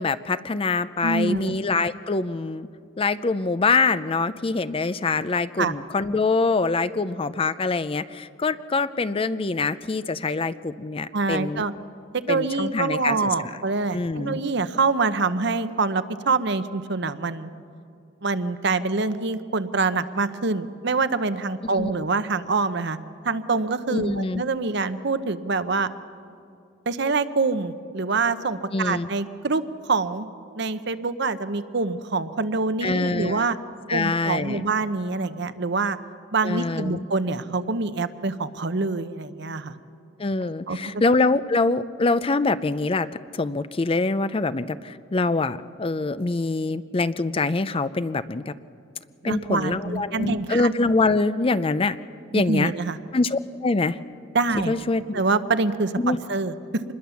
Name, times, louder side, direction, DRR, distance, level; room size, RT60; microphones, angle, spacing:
voice 1, 0.0-2.7 3.0-11.6 12.3-13.3 13.9-14.4 21.8-21.9 23.9-24.4 28.7-29.1 32.8-33.5 33.9-34.7 36.4-37.0 40.2-43.1 43.3-48.5 49.2-52.0 52.3-52.7 53.1-54.0 54.6-55.2 56.0-56.2, left 3 dB, 30° left, 14 dB, 0.5 m, -24 dB
voice 2, 1.0-1.5 5.6-5.8 11.1-11.7 12.1-17.5 18.2-23.0 23.2-25.9 26.9-30.3 30.5-33.6 33.9-36.0 36.3-39.7 40.4-41.0 49.3-50.7 52.3-53.0 54.3-54.7 55.1-56.8, right 3 dB, 60° right, 11 dB, 0.9 m, -25 dB
26.0 x 21.0 x 7.1 m, 2.5 s
head